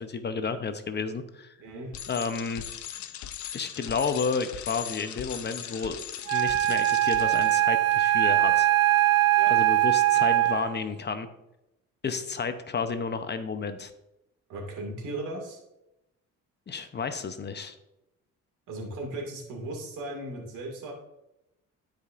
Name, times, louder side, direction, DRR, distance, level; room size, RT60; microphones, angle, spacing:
voice 1, 0.0-1.5 2.1-2.6 3.5-6.0 6.3-8.7 9.5-11.3 12.0-13.9 16.7-17.8, left 5 dB, 35° left, 9 dB, 0.8 m, -31 dB
voice 2, 1.6-2.0 9.3-9.5 14.5-15.6 18.7-20.9, right 2 dB, 85° right, 0 dB, 2.3 m, -37 dB
Bicycle, 1.9-7.6, left 10 dB, 70° left, 0.7 m, -39 dB
Wind instrument woodwind instrument, 6.3-10.9, right 14 dB, 55° right, 0.5 m, -22 dB
12.5 x 5.1 x 2.5 m, 0.91 s
cardioid pair, 90°, 30 cm